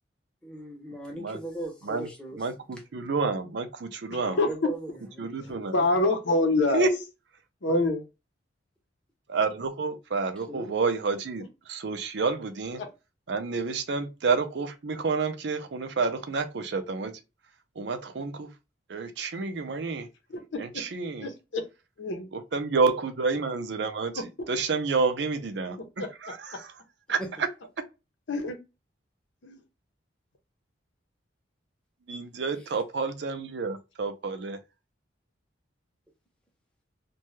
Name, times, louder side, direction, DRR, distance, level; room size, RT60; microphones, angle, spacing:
voice 1, 0.4-2.4 4.2-4.9 5.2-5.6 10.5-10.7 27.2-27.3, right 1 dB, 5° left, 0.7 m, -38 dB
voice 2, 2.4-4.4 5.2-5.8 6.7-7.0 9.3-12.8 13.3-17.1 17.8-18.5 18.9-20.1 20.6-21.3 22.3-24.1 24.5-26.7 27.1-27.5 32.1-34.6, right 4 dB, 65° right, 0.5 m, -29 dB
voice 3, 4.1-4.5 5.4-6.9 7.6-8.0 12.8-12.9 20.3-20.6 21.2-21.6 22.0-22.3 26.0-26.1 28.3-28.6 29.4-29.6, left 2 dB, 75° left, 0.7 m, -26 dB
2.6 x 2.2 x 3.0 m
head